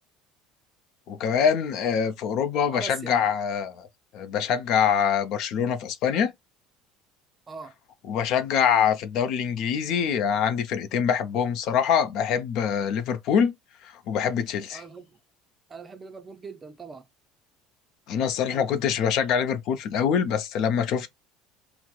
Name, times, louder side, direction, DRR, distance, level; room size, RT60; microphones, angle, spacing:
voice 1, 1.1-3.9 4.1-6.3 8.0-13.5 13.8-14.8 18.1-21.1, left 7 dB, 65° left, 0.5 m, -24 dB
voice 2, 2.7-3.2 7.5-7.7 14.7-15.2 15.7-17.0 18.5-18.7, right 5 dB, 25° right, 0.5 m, -41 dB
4.3 x 2.0 x 2.3 m
supercardioid pair, 110°, 0 cm